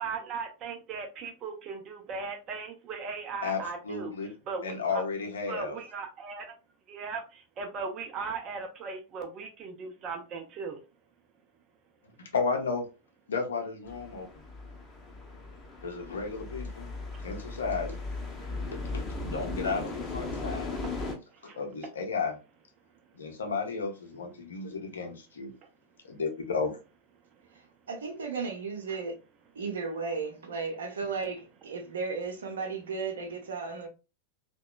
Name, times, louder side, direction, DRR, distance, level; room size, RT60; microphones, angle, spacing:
voice 1, 0.0-4.1 4.5-5.0 5.5-6.5 6.9-7.2 7.6-10.8 21.5-21.6, right 5 dB, 35° right, 0.5 m, -37 dB
voice 2, 3.4-4.3 4.6-5.8 12.2-12.9 13.3-14.3 15.8-16.9 17.2-18.0 18.7-20.8 21.4-22.4 23.2-25.5 26.2-26.7, left 4 dB, 70° left, 0.6 m, -33 dB
sound 1, 13.9-21.2, left 3 dB, 20° left, 0.6 m, -37 dB
voice 3, 27.5-29.1 29.5-33.9, right 4 dB, 65° right, 0.7 m, -35 dB
2.8 x 2.2 x 2.2 m
figure-of-eight pair, 90°, 0 cm